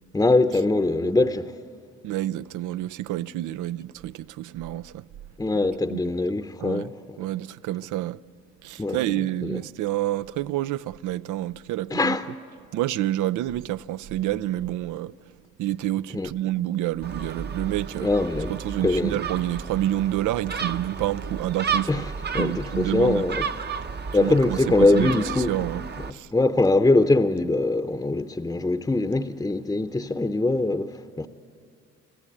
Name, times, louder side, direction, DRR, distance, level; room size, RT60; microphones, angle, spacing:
voice 1, 0.1-1.5 5.4-6.9 8.8-9.6 11.9-12.3 16.1-16.3 18.0-18.5 18.8-19.2 21.9-23.5 24.1-25.6 26.3-31.3, left 2 dB, 10° left, 0.7 m, -22 dB
voice 2, 2.0-5.0 5.9-6.0 6.6-6.8 7.2-8.2 8.6-12.2 12.7-15.1 15.6-18.1 18.5-22.0 22.4-23.2 24.2-25.1 25.5-25.8 26.1-26.3, right 14 dB, 85° right, 0.5 m, -28 dB
Gull seagull, 17.0-26.1, right 6 dB, 35° right, 0.8 m, -33 dB
26.5 x 14.5 x 10.0 m
cardioid pair, 90°, 30 cm